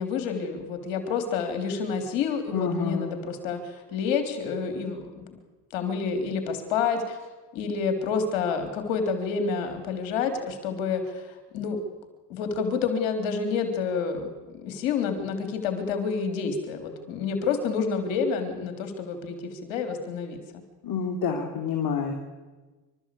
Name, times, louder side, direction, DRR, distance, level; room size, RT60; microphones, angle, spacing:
voice 1, 0.0-5.4 5.7-7.2 7.5-11.8 12.3-20.6, left 5 dB, 85° left, 7 dB, 3.4 m, -29 dB
voice 2, 2.5-3.2 20.8-22.1, left 5 dB, 55° left, 3 dB, 3.1 m, -28 dB
27.0 x 13.0 x 8.4 m, 1.3 s
supercardioid pair, 75°, 43 cm